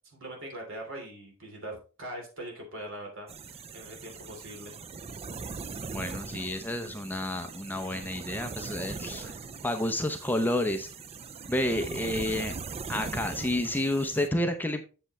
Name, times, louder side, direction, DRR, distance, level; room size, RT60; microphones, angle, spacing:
voice 1, 0.1-4.8, right 1 dB, 65° right, 2 dB, 3.1 m, -42 dB
sound 1, 3.3-14.3, right 4 dB, 30° right, 0.5 m, -40 dB
voice 2, 5.9-9.3 9.6-10.9 11.5-12.6 12.9-14.8, left 1 dB, 10° left, 6 dB, 0.7 m, -30 dB
7.9 x 7.4 x 3.1 m, 0.35 s
head